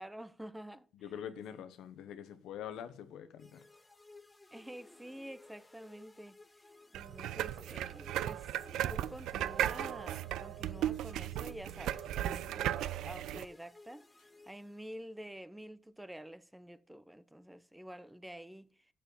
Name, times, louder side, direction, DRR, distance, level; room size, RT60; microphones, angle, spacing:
voice 1, 0.0-0.9 1.5-1.7 4.5-6.4 6.9-18.9, equal, 5° right, 0.6 m, -49 dB
voice 2, 0.9-3.6, left 9 dB, 85° left, 0.9 m, -45 dB
sound 1, 3.4-15.2, left 2 dB, 15° left, 1.0 m, -58 dB
sound 2, 6.9-13.5, right 12 dB, 85° right, 0.3 m, -36 dB
6.9 x 6.6 x 6.9 m
cardioid pair, 90°, 0 cm